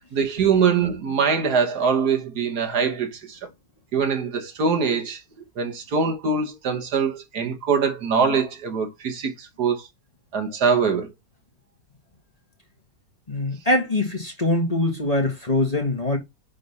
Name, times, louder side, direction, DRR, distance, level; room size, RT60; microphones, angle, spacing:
voice 1, 0.1-3.4 3.9-5.2 5.6-9.9 10.3-11.1, right 5 dB, 65° right, 1.7 m, -23 dB
voice 2, 13.3-16.2, left 1 dB, 20° left, 1.5 m, -23 dB
9.4 x 3.8 x 4.1 m
omnidirectional pair, 1.9 m